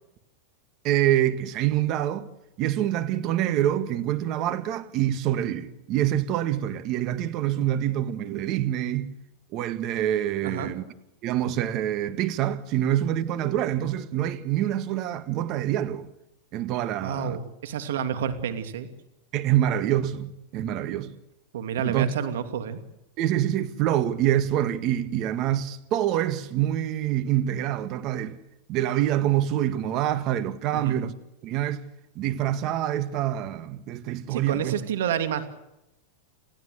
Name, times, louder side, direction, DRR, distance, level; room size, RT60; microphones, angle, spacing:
voice 1, 0.8-2.3 2.6-9.1 9.5-10.8 11.2-16.1 16.5-17.4 19.3-21.1 21.8-22.1 23.2-28.4 28.7-31.1 31.4-31.8 32.2-34.8, right 12 dB, 40° right, 1.8 m, -26 dB
voice 2, 17.0-18.9 21.5-22.8 30.7-31.0 34.3-35.5, right 8 dB, 80° right, 2.8 m, -29 dB
29.0 x 16.0 x 8.1 m
supercardioid pair, 140°, 0 cm